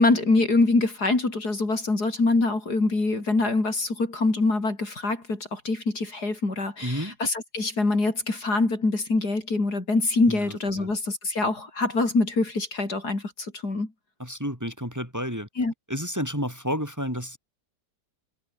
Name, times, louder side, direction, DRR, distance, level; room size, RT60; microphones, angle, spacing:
voice 1, 0.0-13.9 15.6-15.7, left 3 dB, 60° left, 5.2 m, -24 dB
voice 2, 6.8-7.2 10.3-10.9 14.2-15.5 15.9-17.4, equal, 10° right, 5.5 m, -31 dB
omnidirectional pair, 1.9 m